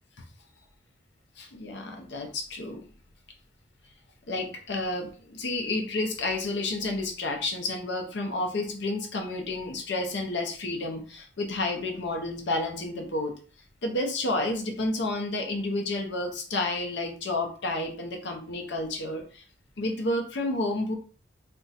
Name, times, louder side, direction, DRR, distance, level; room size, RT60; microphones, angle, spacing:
voice 1, 1.4-2.8 4.3-13.3 13.8-19.4 19.8-21.0, left 2 dB, 65° left, 3 dB, 0.6 m, -30 dB
2.5 x 2.2 x 3.9 m, 0.39 s
head